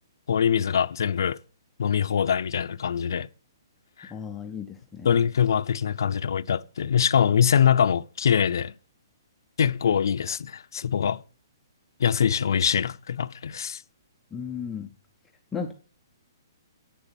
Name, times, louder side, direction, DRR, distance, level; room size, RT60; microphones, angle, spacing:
voice 1, 0.3-1.4 1.8-3.3 4.0-4.1 5.0-8.7 9.6-11.2 12.0-13.8, left 8 dB, 60° left, 0.5 m, -23 dB
voice 2, 4.0-5.1 14.3-14.9 15.5-15.7, left 6 dB, 5° left, 0.5 m, -34 dB
10.0 x 8.8 x 5.8 m
hypercardioid pair, 180°, 2 cm